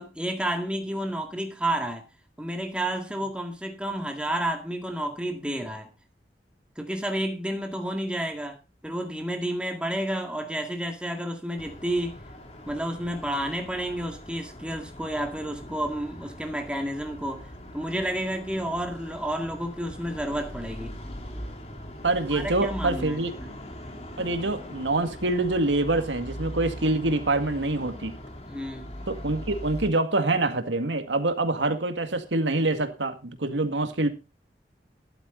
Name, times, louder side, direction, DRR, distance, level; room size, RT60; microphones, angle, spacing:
voice 1, 0.0-2.0 2.4-5.9 6.8-8.6 8.8-12.2 12.6-20.9 22.3-23.5 28.4-29.1, right 1 dB, 5° right, 2.1 m, -31 dB
sound 1, 11.6-29.9, equal, 35° left, 2.6 m, -41 dB
voice 2, 22.0-23.3 24.2-28.1 29.1-34.1, right 2 dB, 90° right, 2.0 m, -25 dB
13.0 x 11.5 x 3.8 m
head